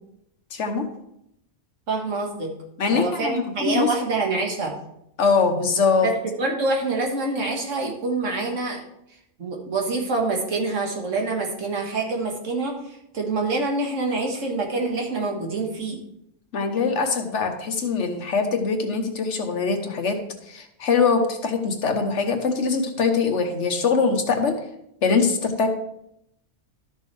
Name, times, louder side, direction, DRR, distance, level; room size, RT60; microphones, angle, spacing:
voice 1, 0.5-0.9 2.8-3.9 5.2-6.1 16.5-20.2 20.4-24.6 25.0-25.7, left 5 dB, 70° left, 5 dB, 1.4 m, -22 dB
voice 2, 1.9-2.5 2.9-4.7 6.0-8.8 9.4-16.0, right 3 dB, 90° right, 1 dB, 1.9 m, -26 dB
12.5 x 6.4 x 3.3 m, 0.78 s
omnidirectional pair, 1.3 m